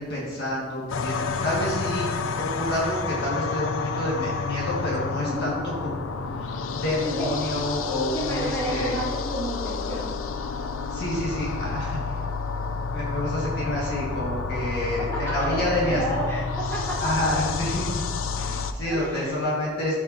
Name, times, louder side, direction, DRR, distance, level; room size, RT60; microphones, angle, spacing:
voice 1, 0.0-2.1 2.4-5.6 5.8-9.0 10.9-12.1 12.9-16.0 17.0-18.0 18.4-20.0, left 1 dB, 55° left, -5 dB, 1.8 m, -29 dB
sound 1, 0.9-18.7, left 4 dB, 80° left, 0.5 m, -30 dB
voice 2, 5.2-5.5 7.0-7.5 8.1-10.1 14.7-17.4 18.8-19.4, right 1 dB, 15° left, -8 dB, 2.6 m, -31 dB
14.0 x 5.3 x 2.8 m, 1.4 s
head